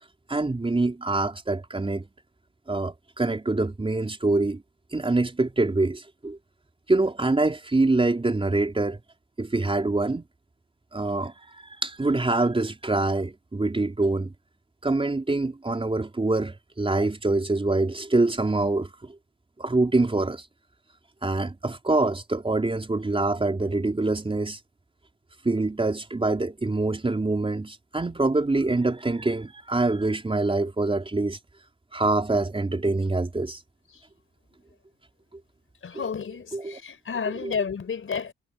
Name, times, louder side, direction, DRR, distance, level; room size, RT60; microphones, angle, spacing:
voice 1, 0.3-2.1 2.7-4.6 4.9-6.4 6.9-9.0 9.4-10.2 10.9-11.5 11.8-14.3 14.8-19.2 19.6-20.4 21.2-24.6 25.4-31.4 31.9-33.6 36.5-36.8 37.4-37.5, right 2 dB, 20° right, 4.1 m, -25 dB
voice 2, 35.8-38.3, left 6 dB, 45° left, 4.4 m, -31 dB
cardioid pair, 90°, 30 cm